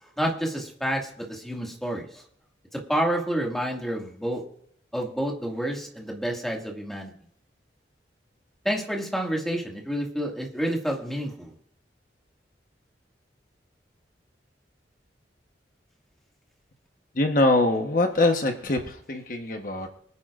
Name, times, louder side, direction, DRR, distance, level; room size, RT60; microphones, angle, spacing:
voice 1, 0.2-2.1 2.7-4.4 4.9-7.1 8.6-11.5, equal, ahead, -1 dB, 2.0 m, -29 dB
voice 2, 17.1-19.9, left 2 dB, 45° left, 4 dB, 1.2 m, -23 dB
24.5 x 9.9 x 2.5 m, 0.66 s
head